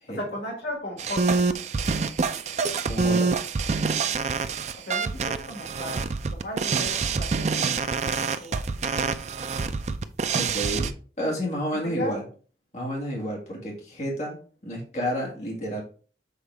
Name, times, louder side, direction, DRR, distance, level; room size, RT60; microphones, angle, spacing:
voice 1, 0.1-1.4 4.8-8.9 10.3-10.5 12.0-12.2, left 1 dB, 80° left, 1 dB, 1.9 m, -36 dB
sound 1, 1.0-10.9, right 4 dB, 40° right, 0.4 m, -26 dB
voice 2, 2.8-3.3 10.3-12.2 12.7-14.4 14.6-15.8, equal, 40° left, -2 dB, 1.9 m, -30 dB
6.7 x 4.1 x 3.4 m, 0.40 s
head